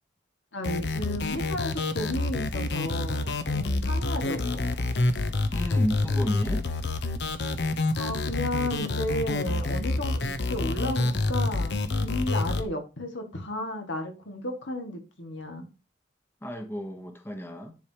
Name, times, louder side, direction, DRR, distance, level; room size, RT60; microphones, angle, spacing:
voice 1, 0.5-4.8 8.0-15.6, left 1 dB, 85° left, 1.9 m, -33 dB
sound 1, 0.6-12.6, left 2 dB, 60° left, 0.8 m, -28 dB
voice 2, 5.5-6.7 16.4-17.8, equal, 15° left, 1.0 m, -33 dB
10.5 x 4.8 x 2.9 m
head